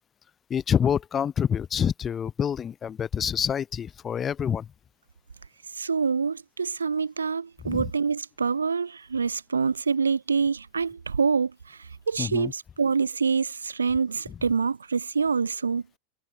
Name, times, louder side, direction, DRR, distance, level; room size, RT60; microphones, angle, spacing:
voice 1, 0.5-4.7 7.6-7.9 12.2-12.5, left 8 dB, 25° left, 1.6 m, -27 dB
voice 2, 5.7-15.8, right 5 dB, 75° right, 1.5 m, -26 dB
figure-of-eight pair, 90°, 0 cm